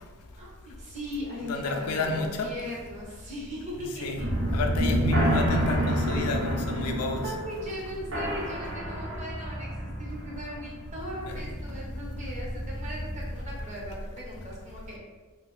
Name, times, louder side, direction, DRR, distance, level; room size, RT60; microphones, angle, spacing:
voice 1, 0.3-4.3 7.2-15.0, equal, 35° right, -5 dB, 0.8 m, -38 dB
voice 2, 1.5-2.5 4.0-4.2 4.5-7.2, left 2 dB, 80° left, 4 dB, 0.4 m, -29 dB
sound 1, 4.2-13.7, equal, 65° right, 0.6 m, -30 dB
2.6 x 2.3 x 3.2 m, 1.3 s
head